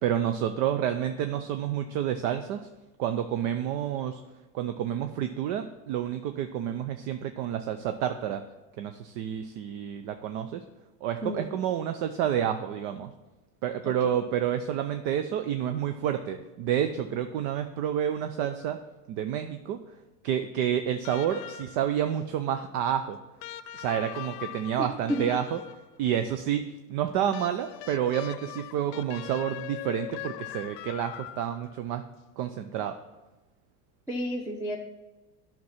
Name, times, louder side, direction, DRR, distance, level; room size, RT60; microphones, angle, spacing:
voice 1, 0.0-2.7 3.0-4.2 4.5-8.4 8.8-10.6 11.0-13.1 13.6-18.8 19.1-19.8 20.2-23.2 23.7-25.6 26.0-32.0 32.4-33.0, right 9 dB, 60° right, 8 dB, 0.7 m, -29 dB
sound 1, 21.0-22.0 23.4-26.0 27.3-31.8 33.1-33.2, left 14 dB, 75° left, 0.6 m, -41 dB
voice 2, 24.8-25.3 34.1-34.8, equal, 5° right, 2 dB, 0.8 m, -31 dB
9.5 x 6.0 x 5.8 m, 1.1 s
supercardioid pair, 110°, 48 cm